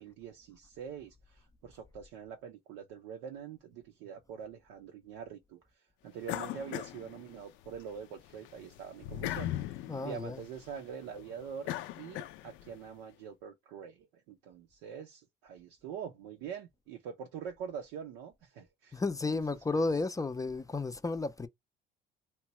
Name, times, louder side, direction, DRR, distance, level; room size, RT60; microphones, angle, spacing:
voice 1, 0.0-5.6 6.0-11.7 12.0-19.4 19.7-19.9, right 7 dB, 90° right, 0.6 m, -45 dB
sound 1, 6.2-7.8 8.2-12.8, left 13 dB, 75° left, 0.4 m, -39 dB
voice 2, 9.9-10.4 18.9-21.5, left 3 dB, 15° left, 0.4 m, -33 dB
2.9 x 2.2 x 2.9 m
supercardioid pair, 70°, 20 cm